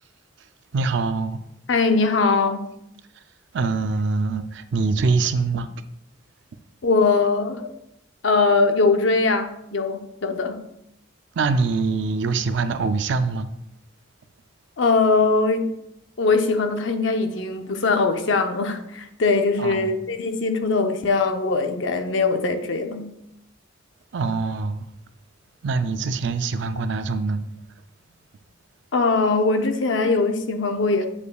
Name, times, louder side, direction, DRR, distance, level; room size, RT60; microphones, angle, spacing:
voice 1, 0.7-1.4 3.5-5.7 11.4-13.5 19.6-20.0 24.1-24.8 25.6-27.4, right 4 dB, 60° right, 0.4 m, -24 dB
voice 2, 1.7-2.6 6.8-7.7 8.2-10.6 14.8-15.7 16.2-23.1 28.9-31.1, left 3 dB, 65° left, 0.6 m, -21 dB
8.1 x 5.2 x 2.3 m
head